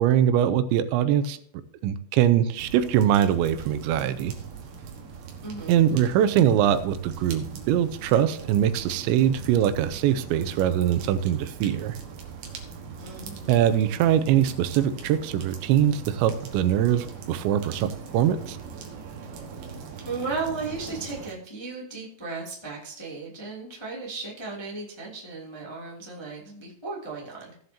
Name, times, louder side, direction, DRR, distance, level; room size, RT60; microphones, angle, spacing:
voice 1, 0.0-1.4 1.8-4.3 5.7-11.9 13.5-18.6, right 10 dB, 90° right, 11 dB, 3.0 m, -22 dB
sound 1, 2.6-21.3, right 5 dB, 60° right, 2.8 m, -41 dB
voice 2, 5.4-5.8 13.0-13.5 20.0-27.7, right 4 dB, 15° left, -5 dB, 1.0 m, -35 dB
17.0 x 7.7 x 2.8 m, 0.64 s
omnidirectional pair, 5.1 m